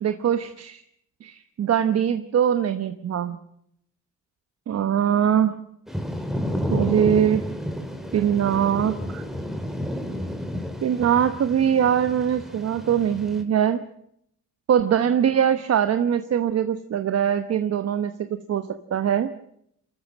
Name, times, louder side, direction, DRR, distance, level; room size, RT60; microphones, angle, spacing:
voice 1, 0.0-0.8 1.2-3.4 4.7-5.6 6.7-7.5 8.1-9.2 10.8-13.8 14.7-19.3, right 9 dB, 55° right, 10 dB, 1.1 m, -22 dB
Thunder / Rain, 5.9-13.4, equal, ahead, 2.8 m, -31 dB
27.5 x 13.5 x 7.6 m, 0.72 s
cardioid pair, 90°, 30 cm